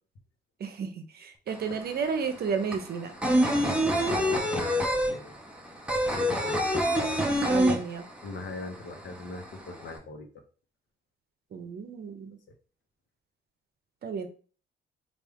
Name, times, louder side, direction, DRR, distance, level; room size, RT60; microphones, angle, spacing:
voice 1, 0.6-3.1 7.5-8.0 11.5-12.4 14.0-14.3, right 6 dB, 55° right, 8 dB, 0.7 m, -32 dB
sound 1, 1.5-1.6 1.8-8.4 8.7-8.8 9.1-9.9, equal, 5° right, 0.7 m, -25 dB
voice 2, 3.9-5.3 6.2-6.7 8.2-10.3, left 3 dB, 65° left, 4 dB, 0.9 m, -41 dB
3.3 x 2.5 x 3.5 m, 0.39 s
cardioid pair, 90°, 20 cm